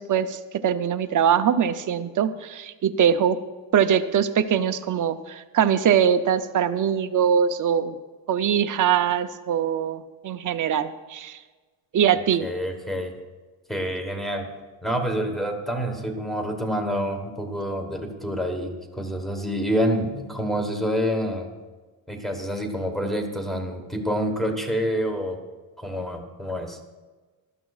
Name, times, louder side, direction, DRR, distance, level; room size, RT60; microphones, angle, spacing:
voice 1, 0.0-3.4 3.7-8.0 8.3-11.4 11.9-12.5, right 8 dB, 45° right, 10 dB, 0.6 m, -22 dB
voice 2, 12.4-13.1 13.7-14.5 14.8-21.5 22.1-25.4 25.8-26.8, equal, ahead, 4 dB, 1.2 m, -27 dB
19.0 x 13.0 x 2.4 m, 1.3 s
cardioid pair, 165°, 45 cm